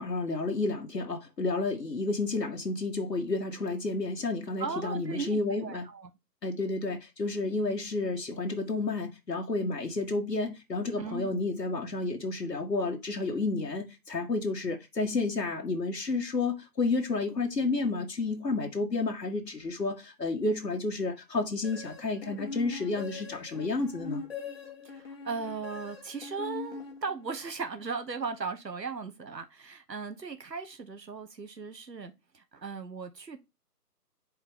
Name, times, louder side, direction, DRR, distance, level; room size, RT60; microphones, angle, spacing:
voice 1, 0.0-5.8 6.4-24.2, left 3 dB, 80° left, 1.7 m, -31 dB
voice 2, 4.6-6.1 11.0-11.4 24.8-33.4, right 5 dB, 90° right, 1.4 m, -37 dB
sound 1, 21.6-27.5, left 4 dB, 35° left, 1.5 m, -42 dB
8.2 x 4.6 x 3.6 m
figure-of-eight pair, 160°, 49 cm